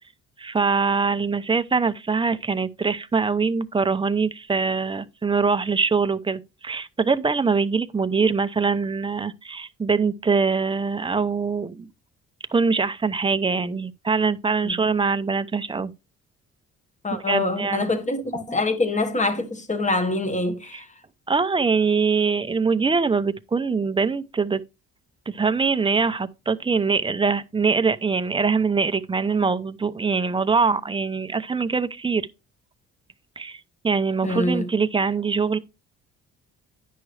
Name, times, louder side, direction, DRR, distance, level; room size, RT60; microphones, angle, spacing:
voice 1, 0.4-11.9 12.5-15.9 17.3-17.9 20.7-20.8 21.3-24.6 25.3-32.3 33.4-35.6, right 4 dB, 15° right, 0.7 m, -23 dB
voice 2, 17.0-20.9 34.2-34.7, left 2 dB, 25° left, 1.5 m, -25 dB
10.0 x 6.0 x 3.3 m
cardioid pair, 90°, 30 cm